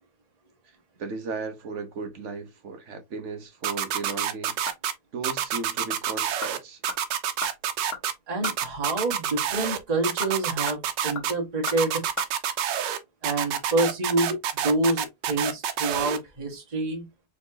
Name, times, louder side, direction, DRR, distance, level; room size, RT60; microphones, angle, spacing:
voice 1, 1.0-4.6 5.1-6.8, right 4 dB, 50° right, 1.1 m, -36 dB
sound 1, 3.6-4.9 5.2-6.6 6.8-8.1 8.4-9.8 10.0-11.3 11.6-13.0 13.2-16.2, right 9 dB, 85° right, 1.4 m, -27 dB
sound 2, 4.7-5.1 5.4-5.5 6.1-6.6 6.9-8.7 9.9-12.3 12.6-12.7, left 6 dB, 55° left, 1.8 m, -39 dB
voice 2, 8.3-12.0 13.2-17.0, right 2 dB, 25° right, 1.4 m, -27 dB
4.2 x 4.0 x 2.8 m
omnidirectional pair, 1.9 m